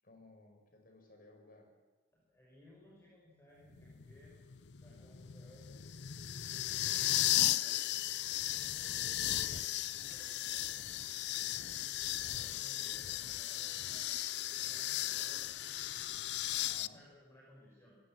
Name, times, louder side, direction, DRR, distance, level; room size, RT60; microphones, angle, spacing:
voice 1, 0.0-1.7 5.7-6.0 16.5-17.0, left 2 dB, 55° left, 3 dB, 5.7 m, -59 dB
voice 2, 2.1-4.4 4.8-5.7 6.4-7.8 8.7-9.8 10.1-10.9 12.0-15.4 16.6-18.0, left 1 dB, 15° left, -4 dB, 5.8 m, -61 dB
sound 1, 3.7-16.9, left 14 dB, 70° left, 0.6 m, -36 dB
sound 2, 8.2-16.8, right 3 dB, 90° right, 3.9 m, -63 dB
26.5 x 17.0 x 7.7 m, 1.3 s
head